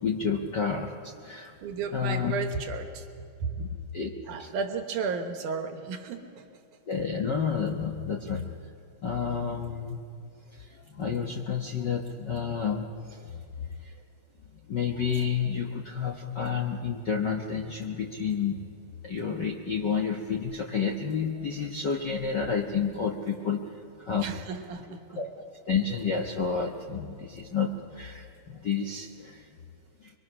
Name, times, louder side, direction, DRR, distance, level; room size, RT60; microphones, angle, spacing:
voice 1, 0.0-1.5 1.9-2.3 3.6-4.1 4.4-4.5 6.9-8.5 9.0-10.0 10.5-13.4 13.8-13.9 14.7-18.6 19.0-24.2 25.2-25.3 25.7-29.4 30.0-30.1, left 6 dB, 60° left, 0 dB, 1.2 m, -30 dB
voice 2, 1.6-3.1 3.4-3.5 4.3-6.5 24.2-25.2, right 5 dB, 75° right, 5 dB, 2.9 m, -33 dB
25.0 x 23.5 x 6.2 m, 2.4 s
omnidirectional pair, 3.6 m